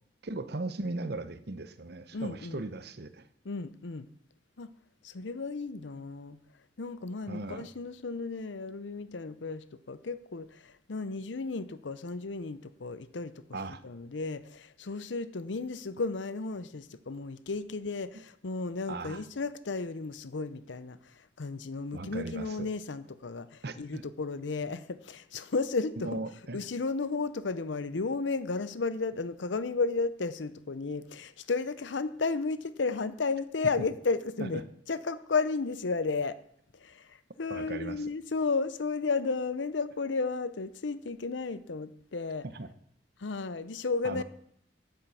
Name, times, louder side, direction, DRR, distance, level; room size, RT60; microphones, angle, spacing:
voice 1, 0.2-3.3 7.3-7.7 13.5-13.8 18.9-19.2 21.9-22.7 23.6-24.0 26.0-26.6 37.5-38.0 42.5-42.7 44.0-44.2, right 2 dB, 60° right, 0.8 m, -38 dB
voice 2, 2.1-2.6 3.4-4.1 4.6-4.7 5.0-6.4 6.8-13.4 13.8-26.2 26.5-36.4 36.7-42.5 43.2-44.2, left 4 dB, 80° left, 0.7 m, -33 dB
9.2 x 9.0 x 6.9 m
head